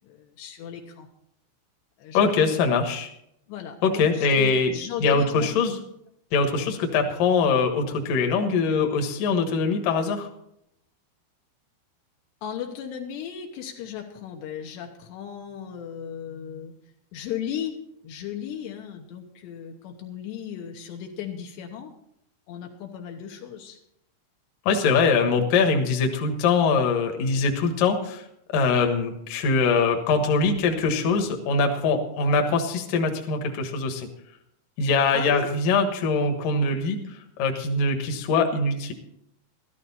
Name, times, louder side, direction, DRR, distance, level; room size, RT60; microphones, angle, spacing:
voice 1, 0.0-1.1 2.0-2.5 3.5-5.5 6.6-6.8 12.4-16.7 17.1-17.8 18.0-21.9 22.5-23.8 35.1-35.5, left 9 dB, 75° left, 2 dB, 3.1 m, -35 dB
voice 2, 2.1-3.1 3.8-4.7 5.0-5.8 6.3-10.3 24.7-28.2 28.5-34.1 34.8-38.9, left 4 dB, 60° left, 4 dB, 2.5 m, -23 dB
13.5 x 13.0 x 4.2 m, 0.75 s
omnidirectional pair, 5.3 m